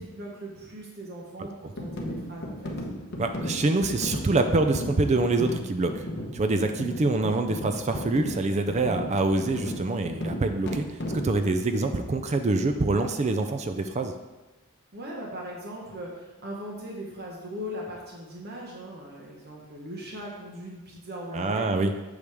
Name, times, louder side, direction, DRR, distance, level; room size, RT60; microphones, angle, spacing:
voice 1, 0.0-2.7 14.9-21.7, equal, 45° right, -2 dB, 1.3 m, -39 dB
sound 1, 1.8-11.4, equal, 50° left, 1.1 m, -35 dB
voice 2, 3.2-6.1 6.3-11.0 11.2-14.1 21.3-21.9, right 3 dB, 30° right, 7 dB, 0.4 m, -25 dB
8.3 x 6.4 x 3.5 m, 1.1 s
head